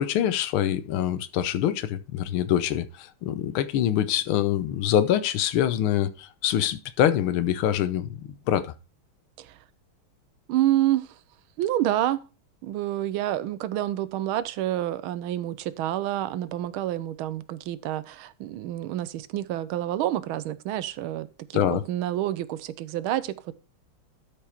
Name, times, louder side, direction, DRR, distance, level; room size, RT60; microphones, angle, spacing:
voice 1, 0.0-8.7 21.5-21.8, left 10 dB, 85° left, 1.6 m, -25 dB
voice 2, 10.5-11.1 11.6-12.2 12.6-23.5, right 13 dB, 80° right, 1.4 m, -28 dB
12.0 x 4.9 x 4.4 m
omnidirectional pair, 2.3 m